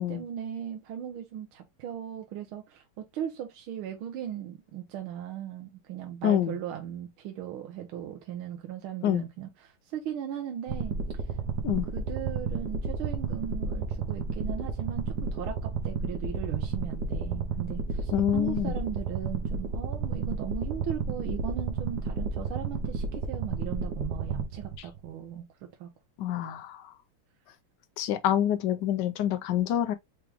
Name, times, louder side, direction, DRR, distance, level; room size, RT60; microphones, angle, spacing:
voice 1, 0.0-11.0 11.9-25.9, right 9 dB, 80° right, 1.6 m, -38 dB
voice 2, 6.2-6.6 9.0-9.3 11.6-11.9 18.1-18.7 26.2-26.9 28.0-29.9, left 11 dB, 75° left, 1.0 m, -27 dB
sound 1, 10.7-25.1, right 4 dB, 60° right, 1.2 m, -32 dB
4.8 x 3.0 x 3.4 m
omnidirectional pair, 2.3 m